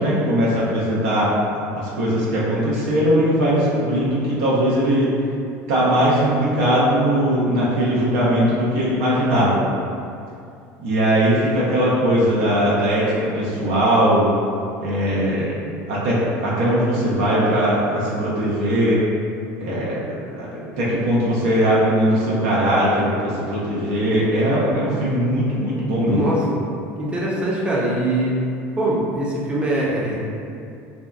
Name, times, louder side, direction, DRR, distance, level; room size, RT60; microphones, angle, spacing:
voice 1, 0.0-1.3 1.7-5.1 5.7-9.7 10.8-14.3 14.8-15.6 15.9-19.0 19.6-20.0 20.3-26.2, equal, 90° right, -7 dB, 0.6 m, -20 dB
voice 2, 26.1-26.6 27.0-28.4 28.8-30.1, right 1 dB, 15° right, -5 dB, 0.5 m, -22 dB
2.6 x 2.2 x 2.3 m, 2.5 s
supercardioid pair, 125°, 6 cm